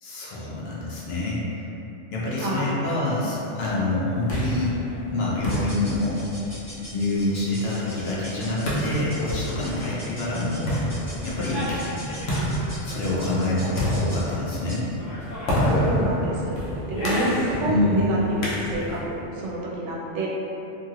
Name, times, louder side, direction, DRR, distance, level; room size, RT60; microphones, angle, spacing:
voice 1, 0.0-1.6 2.1-4.8 5.1-6.2 6.9-10.7 11.2-11.7 12.8-14.8 17.6-18.2, left 2 dB, 65° left, -6 dB, 0.8 m, -26 dB
voice 2, 2.4-2.9 15.9-16.6 16.9-20.3, right 2 dB, 75° right, -4 dB, 0.9 m, -28 dB
sound 1, 3.9-19.1, equal, 85° left, 1.1 m, -29 dB
sound 2, 5.5-14.9, equal, 15° left, 0.7 m, -43 dB
2.9 x 2.7 x 2.4 m, 2.9 s
omnidirectional pair, 1.3 m